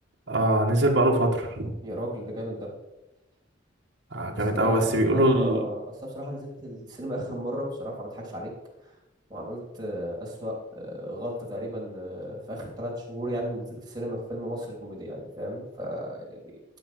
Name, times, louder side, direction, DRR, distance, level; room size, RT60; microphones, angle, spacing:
voice 1, 0.3-1.7 4.1-5.6, right 1 dB, 60° right, 0 dB, 1.8 m, -23 dB
voice 2, 1.8-2.7 4.4-8.5 9.3-16.4, equal, 20° right, -3 dB, 3.4 m, -34 dB
11.5 x 6.4 x 6.1 m, 0.96 s
head